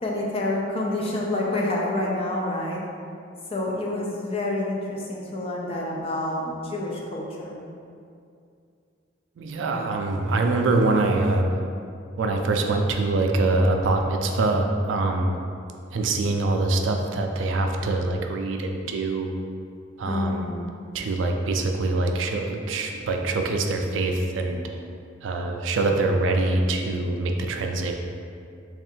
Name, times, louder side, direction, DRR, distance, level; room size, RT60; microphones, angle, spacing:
voice 1, 0.0-2.8 3.5-7.6 9.7-9.9 20.1-20.7, left 2 dB, 30° left, -3 dB, 0.5 m, -28 dB
voice 2, 9.4-11.4 12.2-15.4 15.9-19.3 20.0-20.5 20.9-24.6 25.2-27.9, right 2 dB, 75° right, 3 dB, 0.4 m, -24 dB
3.4 x 2.4 x 4.4 m, 2.4 s
head